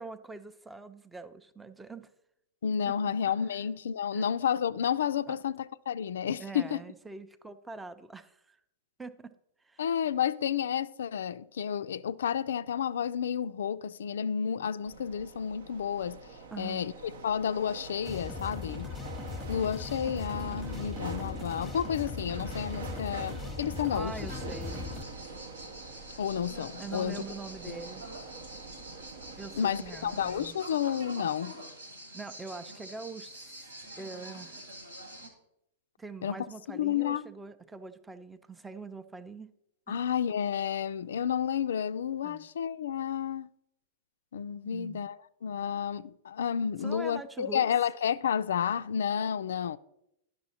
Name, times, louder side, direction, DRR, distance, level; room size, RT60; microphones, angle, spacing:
voice 1, 0.0-2.1 2.9-3.0 4.1-4.3 5.3-5.4 6.4-8.6 9.0-9.3 9.6-9.8 16.5-16.9 23.9-24.9 26.8-28.1 29.4-30.6 32.1-34.6 36.0-39.5 39.9-40.0 42.2-42.5 44.7-45.0 46.8-47.6, right 3 dB, 10° right, 0.6 m, -43 dB
voice 2, 2.6-6.8 9.8-16.2 16.6-18.9 19.5-24.1 26.2-27.2 27.7-27.8 29.5-31.5 36.2-37.2 39.9-43.5 44.3-49.8, left 8 dB, 70° left, 0.3 m, -31 dB
sound 1, 14.8-30.5, right 4 dB, 65° right, 0.8 m, -44 dB
sound 2, 18.0-25.0, left 5 dB, 15° left, 0.8 m, -39 dB
sound 3, 24.1-35.3, right 1 dB, 80° right, 1.9 m, -46 dB
10.5 x 6.2 x 4.2 m
figure-of-eight pair, 100°, 0 cm